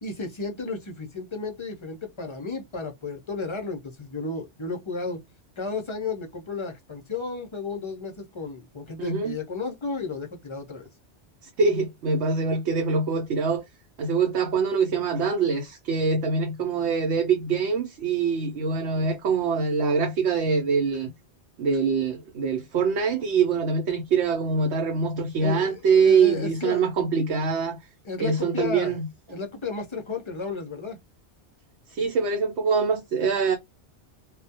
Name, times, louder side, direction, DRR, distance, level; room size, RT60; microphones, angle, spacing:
voice 1, 0.0-5.2 5.6-10.9 25.4-26.8 28.0-29.0 29.3-31.0, left 4 dB, 40° left, 0.4 m, -33 dB
voice 2, 9.0-9.4 11.4-13.6 14.0-21.1 21.6-27.8 28.2-29.1 31.9-33.6, right 5 dB, 75° right, 0.9 m, -24 dB
2.2 x 2.1 x 2.6 m
omnidirectional pair, 1.2 m